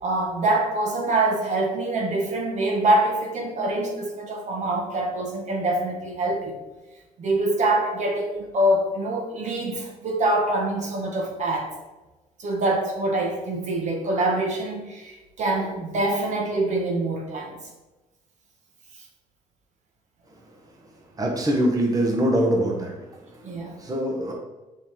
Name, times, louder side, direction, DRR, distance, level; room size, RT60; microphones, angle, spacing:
voice 1, 0.0-6.6 7.2-11.7 12.4-17.6 23.4-23.8, right 2 dB, 55° right, 1 dB, 1.7 m, -25 dB
voice 2, 21.2-22.9 23.9-24.3, right 1 dB, 25° right, 0 dB, 1.6 m, -22 dB
7.5 x 5.5 x 3.9 m, 1.1 s
cardioid pair, 100°, 14 cm